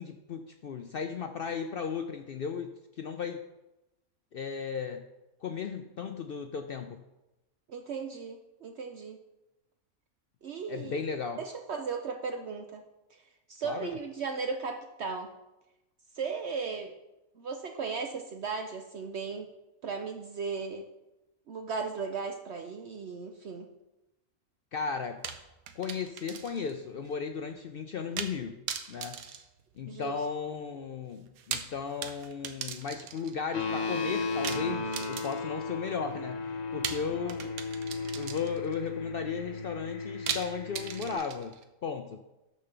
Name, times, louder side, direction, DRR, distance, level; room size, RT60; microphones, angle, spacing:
voice 1, 0.0-2.7 3.0-3.4 4.3-5.0 5.4-7.0 10.7-11.4 13.6-13.9 24.7-25.2 25.8-28.6 28.9-29.2 29.8-36.4 36.7-37.5 38.1-41.6 41.8-42.2, left 6 dB, 65° left, 6 dB, 0.5 m, -35 dB
voice 2, 7.7-9.2 10.4-11.0 11.4-12.8 13.1-13.2 13.5-15.3 16.1-16.9 17.4-19.5 19.8-20.8 21.5-23.7 29.9-30.2, right 5 dB, 60° right, 5 dB, 0.8 m, -36 dB
sound 1, 25.2-26.8 27.0-27.1 28.2-28.4 28.7-30.2 31.3-33.4 34.4-35.6 36.8-38.7 40.3-41.6, right 8 dB, 85° right, 1.2 m, -38 dB
sound 2, 33.5-41.1, left 3 dB, 50° left, 1.3 m, -35 dB
8.9 x 4.3 x 6.7 m, 0.98 s
omnidirectional pair, 1.5 m